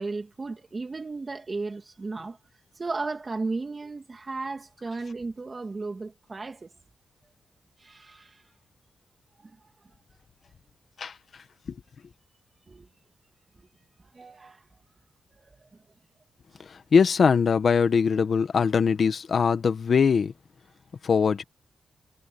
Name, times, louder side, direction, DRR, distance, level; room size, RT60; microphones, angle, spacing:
voice 1, 0.0-2.4 2.7-6.7 7.8-8.4 9.4-9.6 12.7-12.9 14.1-14.8 15.5-15.7, right 3 dB, 35° right, 2.7 m, -35 dB
voice 2, 16.9-20.3 21.0-21.4, left 6 dB, 60° left, 1.6 m, -21 dB
cardioid pair, 80°, 0 cm